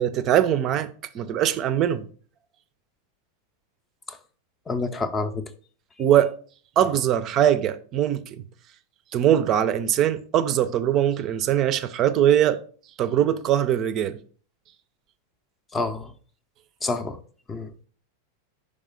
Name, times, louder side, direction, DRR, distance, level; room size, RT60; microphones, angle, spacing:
voice 1, 0.0-2.1 6.0-6.3 6.8-8.4 9.1-12.6 13.0-14.2, right 10 dB, 35° right, 0.5 m, -22 dB
voice 2, 4.7-5.5 15.7-16.1 16.8-17.2 17.5-17.7, left 3 dB, 15° left, 0.5 m, -28 dB
5.4 x 3.5 x 5.0 m
figure-of-eight pair, 90°, 0 cm